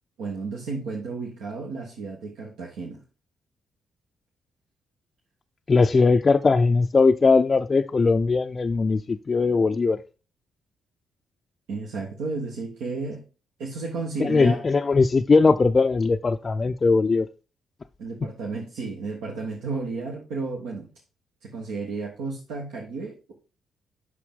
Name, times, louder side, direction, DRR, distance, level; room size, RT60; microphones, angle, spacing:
voice 1, 0.2-3.0 11.7-13.2 13.6-14.6 18.0-20.9 21.4-23.3, right 4 dB, 70° right, 1.3 m, -32 dB
voice 2, 5.7-10.0 14.2-17.3, left 4 dB, 40° left, 0.4 m, -20 dB
8.3 x 6.1 x 3.7 m
hypercardioid pair, 40°, 0 cm